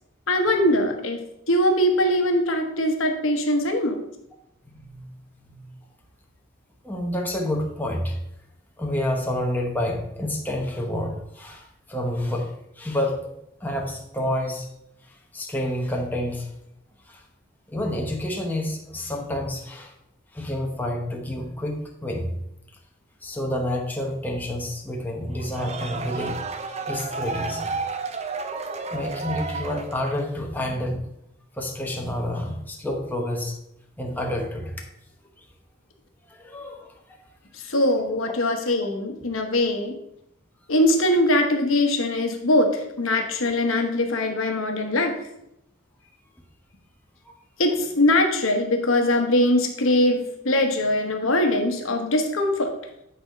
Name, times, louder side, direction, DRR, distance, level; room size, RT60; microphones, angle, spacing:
voice 1, 0.3-1.2 1.5-4.0 37.5-39.9 40.7-45.2 47.6-52.7, left 1 dB, 75° left, 4 dB, 1.1 m, -22 dB
voice 2, 4.7-5.1 5.4-5.7 6.8-8.2 8.8-13.3 13.6-14.7 15.3-16.5 17.1-17.2 17.7-19.9 20.3-22.3 23.2-26.4 26.8-27.7 28.9-31.0 31.5-33.6 34.0-34.7 36.3-36.9, left 1 dB, 10° left, 0 dB, 1.0 m, -29 dB
sound 1, 25.3-30.4, right 4 dB, 30° right, 0.6 m, -32 dB
9.0 x 4.2 x 5.1 m, 0.79 s
head